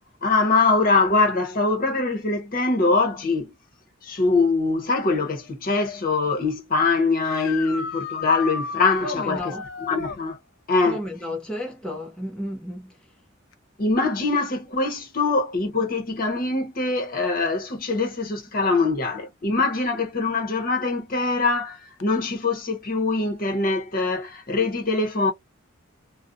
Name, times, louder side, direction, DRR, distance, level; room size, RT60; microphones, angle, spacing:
voice 1, 0.2-3.5 4.0-9.5 9.9-10.4 10.7-11.0 13.8-25.3, left 3 dB, 45° left, 0.8 m, -23 dB
sound 1, 7.2-10.2 13.5-13.6 15.7-15.8 22.0-22.1, left 6 dB, 80° left, 0.4 m, -33 dB
voice 2, 9.0-9.6 10.8-13.0, left 1 dB, 5° left, 0.5 m, -32 dB
2.5 x 2.0 x 2.5 m
head